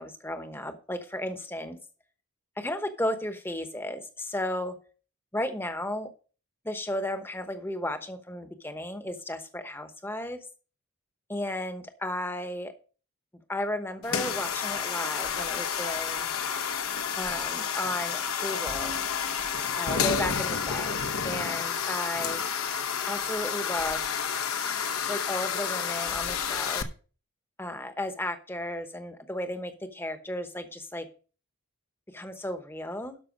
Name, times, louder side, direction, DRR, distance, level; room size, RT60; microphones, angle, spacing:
voice 1, 0.0-1.8 2.6-4.7 5.3-6.1 6.6-10.4 11.3-12.7 13.5-16.3 17.2-19.0 19.8-22.4 23.1-24.0 25.1-26.9 27.6-31.1 32.1-33.2, left 1 dB, 10° left, 8 dB, 0.9 m, -34 dB
sound 1, 14.0-26.8, left 7 dB, 75° left, 0.9 m, -30 dB
12.5 x 5.5 x 5.1 m, 0.38 s
head